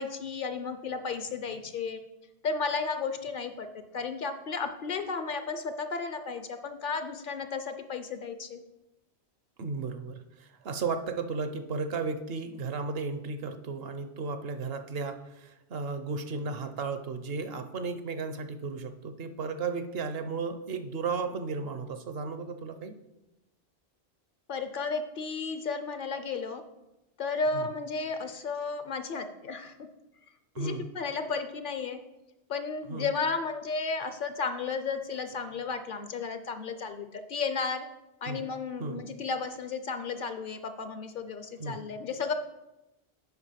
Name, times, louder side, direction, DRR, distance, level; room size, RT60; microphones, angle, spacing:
voice 1, 0.0-2.0 2.4-8.6 24.5-26.6 27.2-29.7 30.6-32.0 32.5-37.8 38.2-42.3, left 4 dB, 55° left, 9 dB, 0.7 m, -33 dB
voice 2, 9.6-23.0 27.5-27.7 30.5-30.9 32.9-33.1 38.2-38.4 38.8-39.0 41.6-41.9, right 4 dB, 65° right, 9 dB, 0.9 m, -34 dB
8.1 x 5.0 x 5.7 m, 0.96 s
omnidirectional pair, 1.1 m